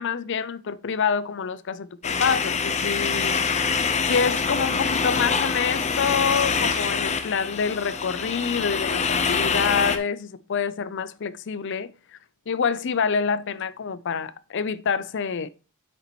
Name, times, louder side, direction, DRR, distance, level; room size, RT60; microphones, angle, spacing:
voice 1, 0.0-3.4 4.1-11.9 12.5-15.5, left 6 dB, 60° left, 0.5 m, -26 dB
sound 1, 2.0-10.0, left 5 dB, 35° left, 0.8 m, -25 dB
8.3 x 6.7 x 3.0 m
head